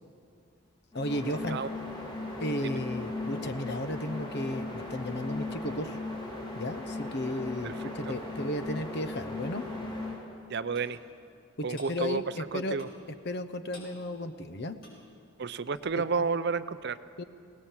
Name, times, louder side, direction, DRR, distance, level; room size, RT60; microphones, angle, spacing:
voice 1, 0.9-1.6 2.4-6.0 6.5-9.7 11.7-12.8 13.2-14.8 16.0-16.3 17.2-17.3, left 1 dB, 50° left, 11 dB, 0.9 m, -34 dB
sound 1, 0.9-10.2, left 2 dB, 20° left, 3.0 m, -37 dB
voice 2, 10.5-11.0 11.6-12.2 12.5-12.9 15.4-17.0, right 4 dB, 50° right, 14 dB, 0.5 m, -31 dB
Clock, 10.7-10.9 11.7-12.0 12.8-13.1 13.7-14.0 14.7-15.1 15.7-15.8, left 1 dB, 70° left, 5.9 m, -50 dB
22.0 x 18.5 x 7.4 m, 2.4 s
head